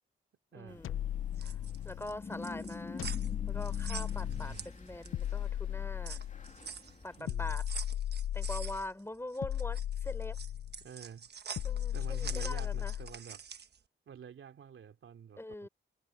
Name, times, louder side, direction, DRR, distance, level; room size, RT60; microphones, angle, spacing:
voice 1, 0.5-1.0 1.4-1.5 1.8-3.1 3.5-6.2 7.0-7.6 8.3-10.4 11.6-12.9 15.4-15.7, left 1 dB, 10° left, 5.1 m, -43 dB
sound 1, 0.7-7.2, left 4 dB, 35° left, 2.6 m, -47 dB
sound 2, 0.8-2.2 3.0-4.6 5.1-6.5 7.3-8.9 9.4-10.8 11.6-13.2, left 11 dB, 85° left, 0.5 m, -36 dB
sound 3, 1.2-5.3 5.7-13.8, right 6 dB, 55° right, 1.2 m, -46 dB
voice 2, 4.2-4.7 7.2-7.6 10.8-11.3 11.9-13.4 14.1-15.7, right 8 dB, 85° right, 2.7 m, -49 dB
wide cardioid pair, 125°, 21 cm